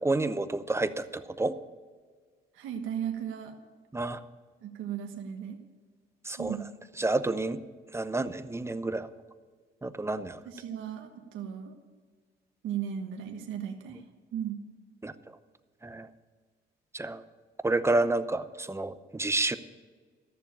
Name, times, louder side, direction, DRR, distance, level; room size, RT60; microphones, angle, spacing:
voice 1, 0.0-1.5 3.9-4.2 6.2-6.5 7.0-7.6 7.9-9.1 9.8-10.4 15.0-15.1 15.8-16.1 16.9-17.2 17.6-19.6, right 2 dB, 15° right, 12 dB, 0.7 m, -29 dB
voice 2, 2.5-3.6 4.6-5.6 6.4-6.6 10.4-11.8 12.6-14.0 14.3-14.6, right 9 dB, 85° right, 3 dB, 1.4 m, -36 dB
13.5 x 7.1 x 8.8 m, 1.5 s
cardioid pair, 90°, 20 cm